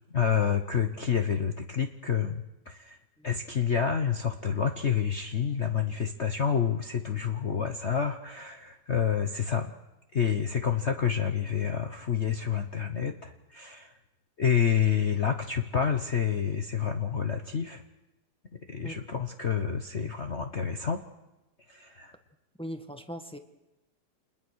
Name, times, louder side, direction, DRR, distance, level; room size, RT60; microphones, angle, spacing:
voice 1, 0.1-3.0 3.2-9.7 10.1-13.9 14.4-17.8 18.7-21.0 21.7-22.1, left 7 dB, 40° left, 6 dB, 1.1 m, -28 dB
voice 2, 22.6-23.4, equal, 5° left, 7 dB, 1.1 m, -39 dB
27.5 x 20.5 x 6.4 m, 0.99 s
omnidirectional pair, 2.3 m